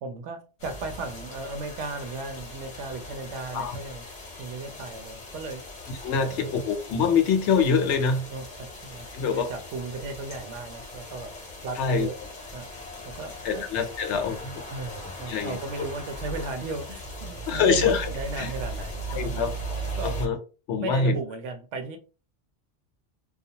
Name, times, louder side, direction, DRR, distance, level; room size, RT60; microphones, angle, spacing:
voice 1, 0.0-4.1 4.4-5.6 6.1-6.7 8.3-11.4 11.6-12.2 12.5-12.7 13.0-13.7 14.7-19.5 20.0-20.2 20.8-22.0, right 3 dB, 90° right, 0.9 m, -36 dB
sound 1, 0.6-20.3, right 1 dB, 40° left, 0.7 m, -38 dB
voice 2, 6.0-8.2 9.1-9.5 11.8-12.1 13.4-14.6 15.3-15.6 17.5-18.1 18.4-18.5 19.1-19.5 20.0-20.4 20.7-21.2, left 5 dB, 80° left, 0.9 m, -24 dB
2.4 x 2.1 x 2.7 m
omnidirectional pair, 1.2 m